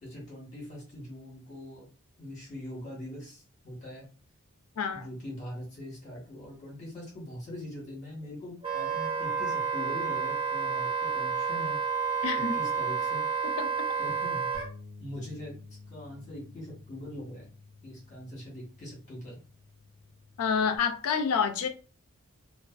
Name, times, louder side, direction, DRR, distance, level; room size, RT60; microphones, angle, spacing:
voice 1, 0.0-1.9 2.2-4.0 4.9-11.8 12.5-13.2 14.0-14.5 15.0-15.6 15.9-17.5 17.8-19.4, left 1 dB, 35° left, 1.2 m, -42 dB
voice 2, 4.8-5.1 12.2-12.5 13.6-13.7 20.4-21.7, left 6 dB, 80° left, 0.4 m, -28 dB
Wind instrument woodwind instrument, 8.6-14.7, right 6 dB, 25° right, 0.5 m, -30 dB
sound 1, 14.5-20.8, left 3 dB, 40° right, 1.1 m, -51 dB
2.4 x 2.3 x 2.3 m
head